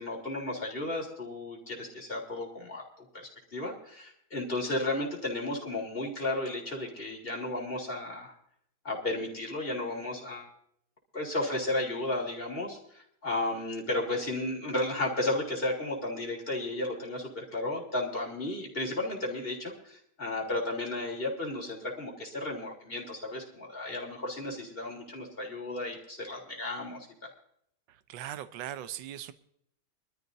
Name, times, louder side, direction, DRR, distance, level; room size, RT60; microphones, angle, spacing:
voice 1, 0.0-8.3 8.8-10.5 11.1-27.3, left 2 dB, 25° left, -1 dB, 3.6 m, -34 dB
voice 2, 27.9-29.3, right 11 dB, 70° right, 12 dB, 1.4 m, -40 dB
24.5 x 13.0 x 2.7 m, 0.70 s
omnidirectional pair, 2.3 m